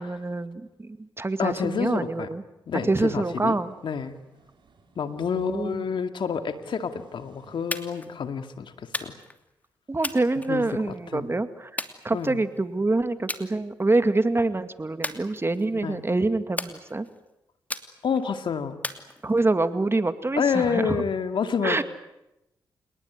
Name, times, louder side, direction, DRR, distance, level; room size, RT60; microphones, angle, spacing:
voice 1, 0.0-2.4 2.9-3.7 5.4-5.8 9.9-17.1 19.2-21.0 21.6-21.8, right 2 dB, 30° right, 10 dB, 2.2 m, -26 dB
voice 2, 1.4-2.3 2.7-3.6 3.8-4.2 5.0-9.1 10.5-11.3 12.1-12.4 15.7-16.0 18.0-18.8 20.4-21.8, left 6 dB, 70° left, 8 dB, 2.3 m, -28 dB
sound 1, 3.1-5.8 6.3-8.2, right 4 dB, 65° right, 6.1 m, -57 dB
sound 2, 7.7-8.1 8.9-9.4 10.0-11.0 11.8-12.6 13.3-13.5 13.9-14.2 15.0-15.8 16.6-17.2 17.7-18.2 18.8-19.6, left 1 dB, 20° left, 2.8 m, -35 dB
29.0 x 19.0 x 9.6 m, 0.92 s
supercardioid pair, 50°, 9 cm